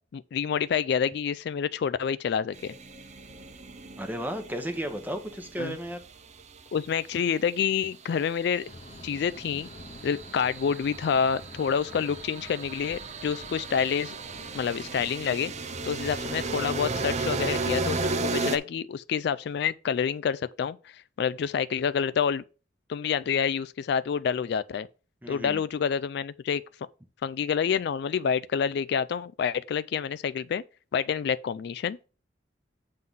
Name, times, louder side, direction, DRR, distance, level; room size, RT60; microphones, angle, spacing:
voice 1, 0.1-2.7 5.6-5.8 6.7-8.7 9.0-9.7 10.0-14.1 14.5-15.5 15.8-22.4 22.9-24.9 25.3-26.6 27.2-30.6 30.9-32.0, left 7 dB, 60° left, 0.3 m, -28 dB
sound 1, 2.5-6.9 8.4-18.6, right 3 dB, 40° right, 0.6 m, -35 dB
voice 2, 4.0-6.0 25.2-25.6, equal, 10° right, 1.0 m, -34 dB
sound 2, 8.7-15.2, left 2 dB, 35° left, 0.8 m, -48 dB
7.7 x 3.8 x 5.4 m
head